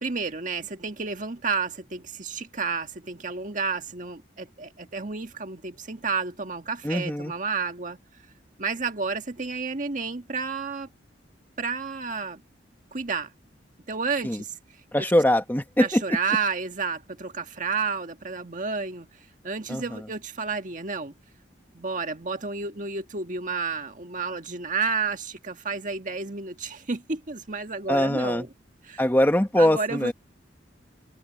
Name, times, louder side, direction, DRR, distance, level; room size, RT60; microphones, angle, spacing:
voice 1, 0.0-8.0 8.6-10.9 11.6-12.4 12.9-13.3 13.9-14.6 15.8-19.1 19.4-21.1 21.7-28.5 28.9-29.0 29.6-30.1, right 4 dB, 45° right, 1.7 m, -31 dB
voice 2, 6.8-7.3 14.2-14.4 14.9-16.2 19.7-20.1 27.9-28.5 29.0-30.1, left 1 dB, 10° left, 1.2 m, -22 dB
head